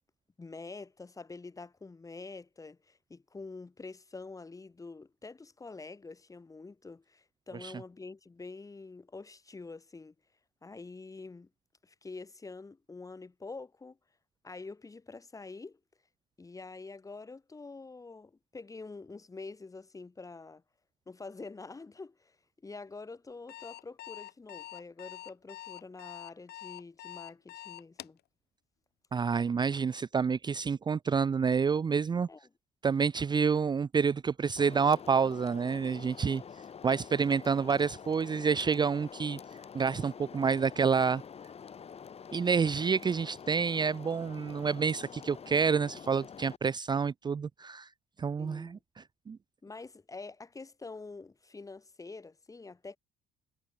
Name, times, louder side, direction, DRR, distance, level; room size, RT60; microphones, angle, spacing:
voice 1, 0.4-10.1 10.6-11.5 11.8-14.0 14.4-15.8 16.4-20.6 21.1-22.4 22.6-28.2 32.3-32.5 48.4-48.8 49.6-53.0, left 3 dB, 20° left, 3.4 m, -46 dB
Alarm, 23.3-28.2, left 14 dB, 75° left, 6.9 m, -45 dB
voice 2, 29.1-32.3 32.8-36.4 36.8-39.4 39.7-41.2 42.3-47.9 48.2-49.4, right 6 dB, 25° right, 0.6 m, -28 dB
sound 1, 34.6-46.6, left 7 dB, 35° left, 2.2 m, -47 dB
cardioid pair, 110°, 17 cm